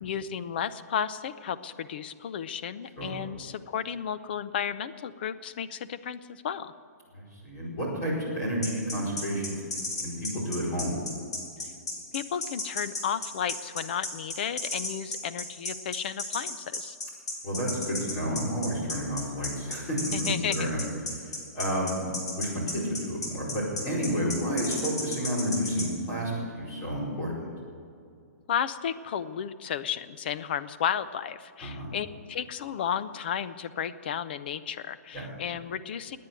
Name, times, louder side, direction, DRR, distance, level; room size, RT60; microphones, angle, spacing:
voice 1, 0.0-6.7 12.1-17.0 20.1-20.7 28.5-36.2, left 8 dB, 35° left, 14 dB, 0.6 m, -33 dB
voice 2, 7.1-9.6 10.0-11.0 17.4-20.8 21.2-22.0 22.3-27.5 31.6-31.9 35.1-35.3, equal, 20° left, -5 dB, 4.9 m, -31 dB
sound 1, 8.6-25.9, left 2 dB, 80° left, 5.4 m, -33 dB
19.0 x 9.5 x 7.8 m, 2.4 s
hypercardioid pair, 175°, 9 cm